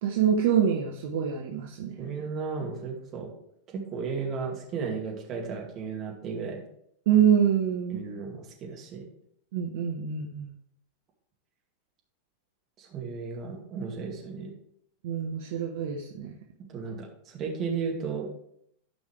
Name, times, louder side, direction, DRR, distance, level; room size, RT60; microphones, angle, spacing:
voice 1, 0.0-2.0 7.1-8.0 9.5-10.5 15.0-16.3, right 8 dB, 55° right, 1 dB, 1.0 m, -25 dB
voice 2, 2.0-3.3 3.7-6.6 7.9-9.1 12.8-14.5 16.6-18.3, right 5 dB, 30° right, 0 dB, 2.3 m, -34 dB
13.0 x 5.3 x 3.3 m, 0.72 s
figure-of-eight pair, 90°, 0 cm